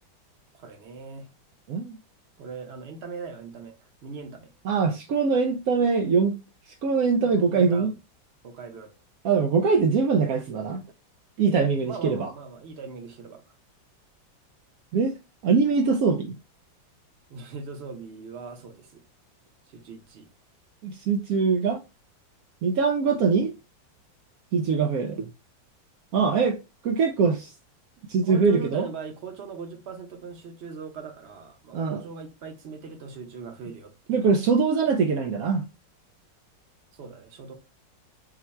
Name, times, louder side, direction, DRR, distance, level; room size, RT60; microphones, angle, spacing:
voice 1, 0.5-1.3 2.4-4.5 7.2-8.0 8.4-8.9 11.8-13.5 17.3-19.0 19.7-20.3 23.0-23.2 26.1-26.3 28.2-34.4 36.9-37.5, right 5 dB, 50° right, 0.8 m, -40 dB
voice 2, 4.7-6.4 6.8-7.9 9.2-10.8 11.4-12.3 14.9-15.1 15.4-16.4 20.8-21.8 22.6-23.5 24.5-25.3 26.1-26.6 26.8-27.5 28.1-28.9 31.7-32.0 34.1-35.7, right 5 dB, 85° right, 0.8 m, -22 dB
4.7 x 2.2 x 4.2 m
omnidirectional pair, 2.1 m